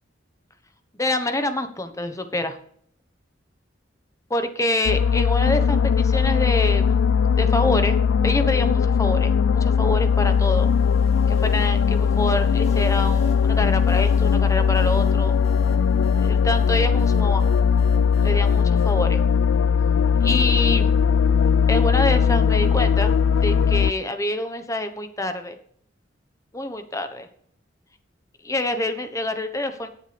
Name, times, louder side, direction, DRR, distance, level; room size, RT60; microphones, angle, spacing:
voice 1, 0.9-2.6 4.3-7.1 7.4-8.0 8.2-10.7 11.3-15.4 16.2-17.5 18.2-19.2 20.2-20.9 21.7-23.1 23.4-25.6 26.5-27.3 28.4-29.9, left 1 dB, 15° left, 8 dB, 1.1 m, -26 dB
sound 1, 4.9-23.9, left 6 dB, 75° left, 0.3 m, -19 dB
sound 2, 9.9-19.0, right 2 dB, 30° left, 2.1 m, -45 dB
18.0 x 7.4 x 3.4 m, 0.62 s
head